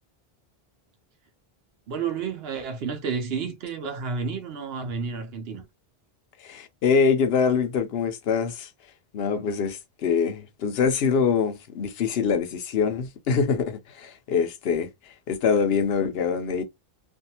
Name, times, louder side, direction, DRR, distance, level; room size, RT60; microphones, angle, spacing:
voice 1, 1.9-5.7, right 5 dB, 75° right, 0.9 m, -31 dB
voice 2, 6.4-8.7 9.1-16.6, left 6 dB, 75° left, 0.8 m, -24 dB
2.6 x 2.3 x 2.8 m
omnidirectional pair, 1.0 m